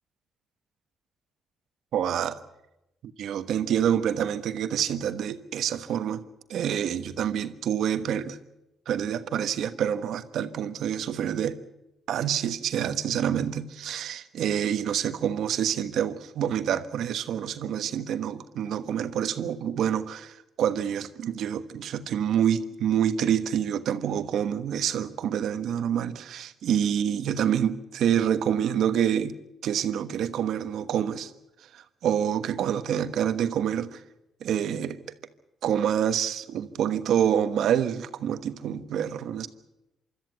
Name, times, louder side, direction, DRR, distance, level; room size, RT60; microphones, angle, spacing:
voice 1, 1.9-2.4 3.0-6.2 6.5-8.4 8.9-11.6 12.1-29.4 29.6-31.3 31.7-34.0 34.4-35.0 35.6-39.5, right 9 dB, 75° right, 11 dB, 1.2 m, -27 dB
25.0 x 13.5 x 9.4 m, 0.94 s
cardioid pair, 90°, 0 cm